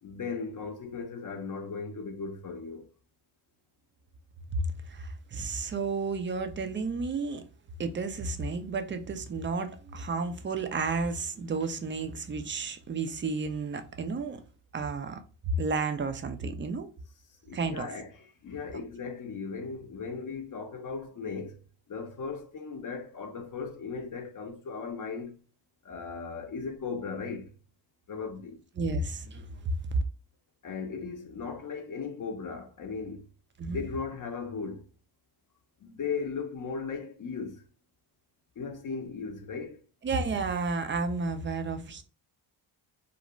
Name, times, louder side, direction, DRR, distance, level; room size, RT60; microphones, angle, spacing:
voice 1, 0.0-2.9 17.4-21.6 21.9-25.3 25.8-27.5 28.1-28.6 30.6-33.3 33.7-34.9 35.8-37.6 38.6-39.8, left 5 dB, 40° left, 0.6 m, -37 dB
voice 2, 4.5-7.4 7.8-14.4 14.7-15.2 15.5-16.9 17.5-17.9 28.8-29.7 33.6-33.8 40.0-42.0, right 3 dB, 25° right, 0.4 m, -32 dB
2.6 x 2.0 x 3.0 m
cardioid pair, 75°, 48 cm